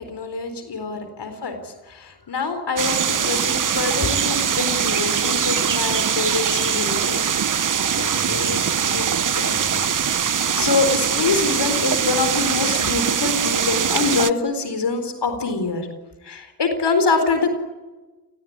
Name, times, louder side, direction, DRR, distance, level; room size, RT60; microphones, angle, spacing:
voice 1, 0.0-7.3 10.6-15.9 16.2-17.5, left 4 dB, 90° left, 8 dB, 4.3 m, -24 dB
sound 1, 2.8-14.3, right 7 dB, 50° right, 0.8 m, -22 dB
voice 2, 7.5-9.9, left 4 dB, 65° left, 8 dB, 3.7 m, -33 dB
29.5 x 19.0 x 9.6 m, 1.2 s
cardioid pair, 60°, 40 cm